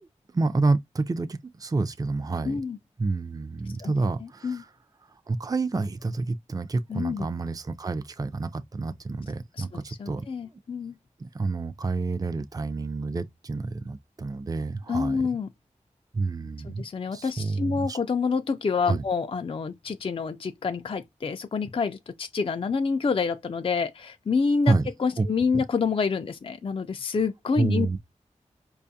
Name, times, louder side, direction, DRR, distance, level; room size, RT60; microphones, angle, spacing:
voice 1, 0.3-2.6 3.0-4.7 5.3-10.3 11.3-15.2 16.1-16.8 17.1-18.0 18.9-19.0 24.7-24.8 25.2-25.3 27.6-28.0, right 3 dB, 30° right, 0.4 m, -28 dB
voice 2, 2.5-2.8 3.8-3.9 4.2-4.6 6.9-7.3 9.5-11.0 14.9-15.5 16.6-24.7 25.0-27.9, left 5 dB, 45° left, 0.3 m, -27 dB
4.9 x 2.3 x 2.7 m
wide cardioid pair, 55°, 13 cm